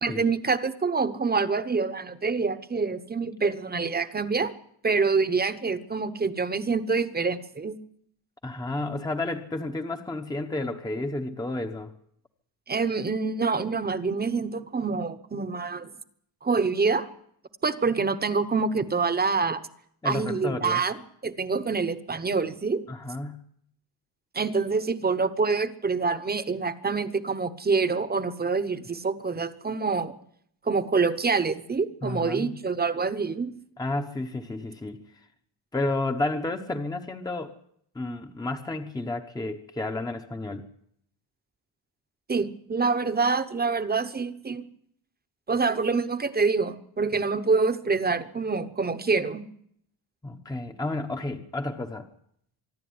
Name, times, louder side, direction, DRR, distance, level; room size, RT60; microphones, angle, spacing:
voice 1, 0.0-4.5 4.8-7.8 12.7-15.9 16.4-17.1 17.6-19.6 20.0-22.8 24.3-30.1 30.6-33.5 42.3-44.6 45.5-49.4, right 4 dB, 20° right, 11 dB, 1.0 m, -26 dB
voice 2, 8.4-11.9 20.0-20.8 22.9-23.4 32.0-32.6 33.8-35.0 35.7-37.5 37.9-40.6 50.2-52.1, left 2 dB, 10° left, 6 dB, 0.9 m, -31 dB
24.5 x 12.0 x 9.5 m, 0.70 s
wide cardioid pair, 170°, 45 cm